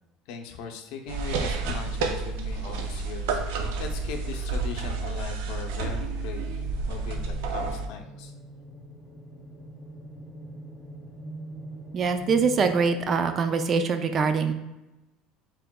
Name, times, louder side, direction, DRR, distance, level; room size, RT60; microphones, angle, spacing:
voice 1, 0.3-6.4 6.9-8.3, left 6 dB, 65° left, 5 dB, 0.6 m, -39 dB
sound 1, 1.1-7.9, right 4 dB, 85° right, 0.5 m, -30 dB
sound 2, 6.2-12.7, right 1 dB, 15° left, 0.6 m, -43 dB
voice 2, 11.9-14.5, right 5 dB, 30° right, 8 dB, 0.4 m, -23 dB
4.8 x 3.7 x 2.2 m, 1.0 s
cardioid pair, 150°, 0 cm